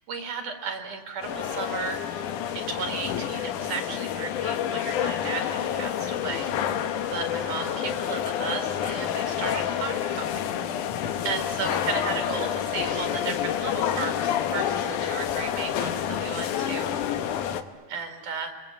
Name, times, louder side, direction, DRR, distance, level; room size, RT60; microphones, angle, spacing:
voice 1, 0.0-2.0 2.6-6.7 7.1-10.5 11.2-17.1 17.9-18.5, right 5 dB, 60° right, 5 dB, 3.6 m, -34 dB
sound 1, 1.2-17.6, left 9 dB, 65° left, 2.3 m, -28 dB
29.5 x 22.0 x 8.9 m, 1.4 s
omnidirectional pair, 4.3 m